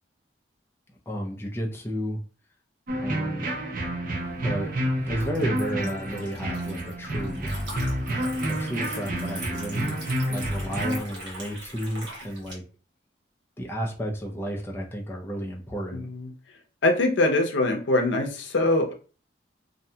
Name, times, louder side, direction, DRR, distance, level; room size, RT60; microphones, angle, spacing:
voice 1, 1.1-2.2 3.0-3.5 4.4-4.7 5.1-7.5 8.5-10.0 10.3-12.6 13.6-16.1, equal, 15° left, -1 dB, 0.4 m, -32 dB
sound 1, 2.9-11.0, right 1 dB, 50° right, 0.6 m, -29 dB
Liquid, 4.2-12.5, right 1 dB, 80° right, 1.2 m, -42 dB
voice 2, 15.9-16.3 16.8-18.9, left 2 dB, 80° left, 3 dB, 0.6 m, -23 dB
2.6 x 2.2 x 2.7 m, 0.37 s
head